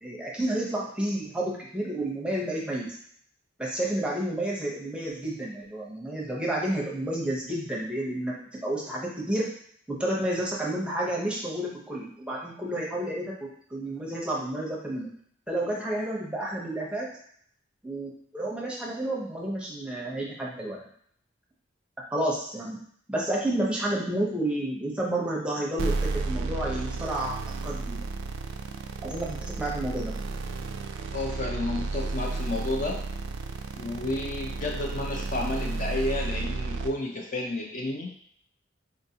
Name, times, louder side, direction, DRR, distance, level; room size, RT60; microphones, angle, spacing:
voice 1, 0.0-2.9 3.6-8.3 8.6-9.5 9.9-15.1 15.5-17.1 17.8-20.8 22.1-22.8 23.1-27.4 27.6-28.0 29.0-30.1, right 1 dB, 5° right, -4 dB, 0.6 m, -30 dB
sound 1, 25.8-36.9, right 3 dB, 75° right, 0.3 m, -32 dB
voice 2, 31.1-33.0 33.8-38.1, left 2 dB, 40° left, 0 dB, 0.5 m, -31 dB
3.8 x 2.6 x 2.7 m, 0.62 s
head